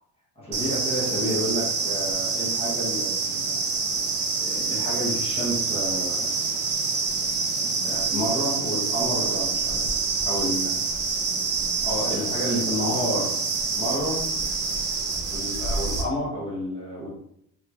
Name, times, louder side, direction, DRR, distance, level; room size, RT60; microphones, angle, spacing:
voice 1, 0.5-3.6 4.4-6.4 7.6-9.9 10.2-10.8 11.8-13.3 13.7-14.2 15.3-17.1, equal, 15° left, -6 dB, 0.9 m, -30 dB
sound 1, 0.5-16.0, right 4 dB, 30° right, 0.4 m, -26 dB
3.6 x 2.9 x 2.3 m, 0.75 s
cardioid pair, 170°, 37 cm